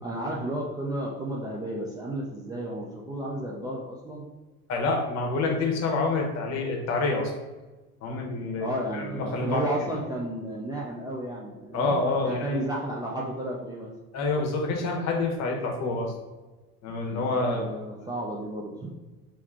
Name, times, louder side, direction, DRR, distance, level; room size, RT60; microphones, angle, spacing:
voice 1, 0.0-4.2 8.6-12.0 12.2-13.9 17.0-18.9, right 1 dB, 10° right, -5 dB, 0.5 m, -32 dB
voice 2, 4.7-7.3 8.0-9.7 11.7-12.6 14.1-16.2 16.8-17.7, left 3 dB, 35° left, 1 dB, 1.1 m, -27 dB
3.5 x 3.2 x 4.5 m, 1.2 s
figure-of-eight pair, 80°, 44 cm